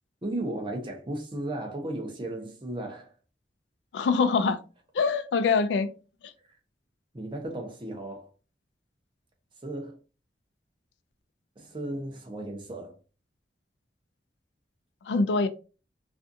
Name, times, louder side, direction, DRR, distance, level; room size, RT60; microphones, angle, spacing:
voice 1, 0.2-3.1 7.1-8.3 9.6-10.0 11.6-12.9, right 1 dB, 30° right, 0.6 m, -35 dB
voice 2, 3.9-4.6 4.9-5.9 15.1-15.5, left 4 dB, 85° left, 0.4 m, -24 dB
2.5 x 2.4 x 2.6 m
head